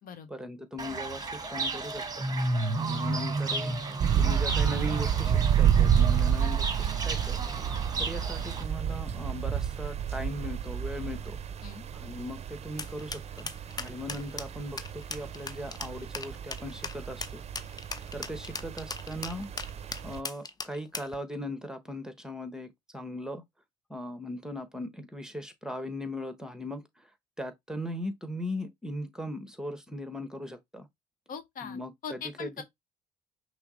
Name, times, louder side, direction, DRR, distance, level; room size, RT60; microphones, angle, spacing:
voice 1, 0.3-2.2 2.8-3.7 4.1-7.4 8.0-11.4 11.9-13.5 13.8-17.4 18.1-19.5 20.0-23.4 23.9-26.8 27.4-30.9 31.6-32.6, left 1 dB, 5° right, 1.1 m, -38 dB
Fowl / Bird, 0.8-8.6, right 2 dB, 25° right, 1.1 m, -33 dB
sound 1, 4.0-20.2, right 8 dB, 40° right, 0.6 m, -30 dB
sound 2, 12.8-21.2, left 4 dB, 25° left, 0.6 m, -38 dB
voice 2, 31.3-32.6, left 6 dB, 60° left, 0.9 m, -41 dB
5.7 x 2.0 x 3.9 m
supercardioid pair, 65°, 16 cm